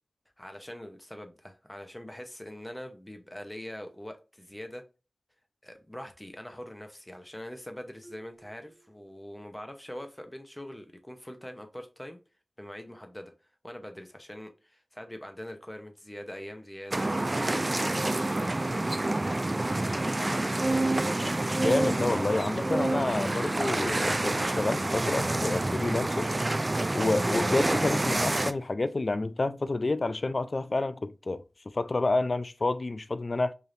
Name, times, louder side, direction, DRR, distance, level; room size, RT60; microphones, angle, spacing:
voice 1, 0.4-4.8 5.6-12.2 12.6-13.3 13.6-19.4 20.1-21.0, left 1 dB, 15° left, 0.8 m, -43 dB
Marimba xylophone, 8.0-9.8, right 2 dB, 10° right, 1.5 m, -58 dB
sound 1, 16.9-28.5, right 2 dB, 35° right, 0.3 m, -28 dB
voice 2, 21.6-26.3 26.9-31.4 31.7-33.5, left 2 dB, 55° left, 0.3 m, -29 dB
4.9 x 2.7 x 2.5 m
wide cardioid pair, 50°, 0 cm